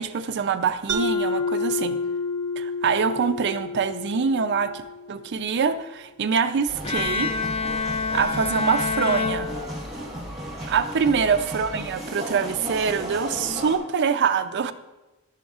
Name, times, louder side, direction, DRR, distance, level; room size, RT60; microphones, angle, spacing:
voice 1, 0.0-2.0 2.6-4.8 5.1-7.3 8.1-9.5 10.7-14.7, right 6 dB, 50° right, 8 dB, 0.4 m, -24 dB
Mallet percussion, 0.9-5.5, left 3 dB, 75° right, 0.8 m, -29 dB
sound 1, 6.7-13.8, equal, ahead, 1.5 m, -35 dB
Bowed string instrument, 6.8-10.2, left 4 dB, 25° left, 0.4 m, -27 dB
12.0 x 6.1 x 2.4 m, 1.1 s
head